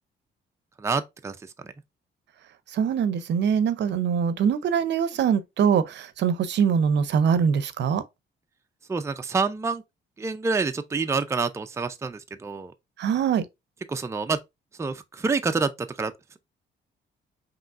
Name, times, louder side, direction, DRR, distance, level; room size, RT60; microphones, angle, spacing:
voice 1, 0.8-1.4 1.6-1.7 8.9-9.8 10.2-12.7 13.9-14.4 14.8-16.4, right 4 dB, 15° right, 0.4 m, -27 dB
voice 2, 2.7-8.0 13.0-13.4, right 7 dB, 65° right, 0.6 m, -23 dB
5.1 x 3.0 x 2.4 m
cardioid pair, 90°, 20 cm